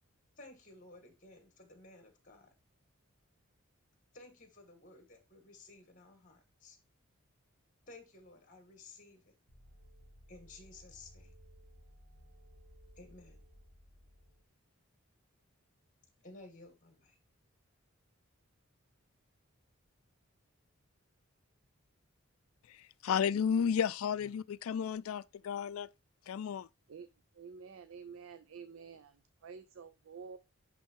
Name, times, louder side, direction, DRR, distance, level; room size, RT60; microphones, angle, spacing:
voice 1, 0.4-2.5 4.1-6.8 7.9-9.3 10.3-11.3 13.0-13.4 16.2-17.2, left 2 dB, 35° left, 1.8 m, -55 dB
sound 1, 9.5-14.5, equal, 90° right, 2.1 m, -58 dB
voice 2, 22.7-25.9 26.3-26.7, left 7 dB, 75° left, 0.3 m, -33 dB
voice 3, 27.3-30.4, right 6 dB, 70° right, 0.4 m, -50 dB
10.0 x 3.4 x 4.5 m
head